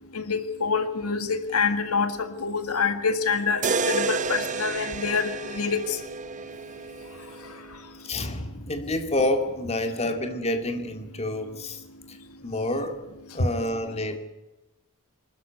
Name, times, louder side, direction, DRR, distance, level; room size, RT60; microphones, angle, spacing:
voice 1, 0.2-5.8, left 5 dB, 90° left, 10 dB, 1.8 m, -26 dB
sound 1, 3.6-7.7, right 5 dB, 35° right, 0.9 m, -30 dB
voice 2, 8.0-11.8 12.4-13.0 13.3-14.2, left 1 dB, 30° left, 7 dB, 2.4 m, -28 dB
25.0 x 13.5 x 9.4 m, 1.0 s
head